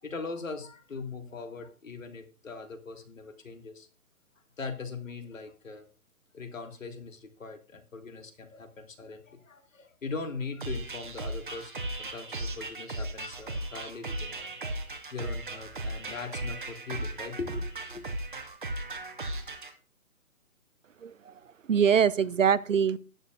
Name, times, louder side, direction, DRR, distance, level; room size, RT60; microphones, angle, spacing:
voice 1, 0.0-3.9 4.6-5.9 6.3-14.5 15.1-18.1, left 4 dB, 60° left, 8 dB, 1.8 m, -40 dB
sound 1, 10.6-19.7, right 2 dB, 35° right, 0.9 m, -36 dB
voice 2, 21.0-21.3 21.7-23.0, right 7 dB, 60° right, 18 dB, 0.6 m, -23 dB
19.0 x 7.1 x 2.4 m, 0.35 s
hypercardioid pair, 175°, 43 cm